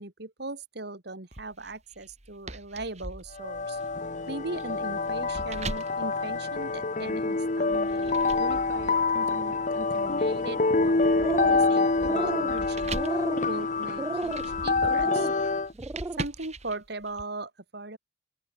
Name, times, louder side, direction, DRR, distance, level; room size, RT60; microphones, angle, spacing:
voice 1, 0.0-3.8 4.3-15.3 16.2-18.0, right 2 dB, 60° right, 2.5 m, -39 dB
sound 1, 1.3-7.1 7.7-17.2, right 2 dB, 35° right, 4.3 m, -42 dB
sound 2, 3.4-15.7, left 3 dB, 40° left, 1.0 m, -26 dB
sound 3, 11.0-11.7 12.0-12.5 12.9-13.5 14.0-14.5 14.9-15.3 15.7-16.2, right 2 dB, 15° right, 0.3 m, -33 dB
open air
head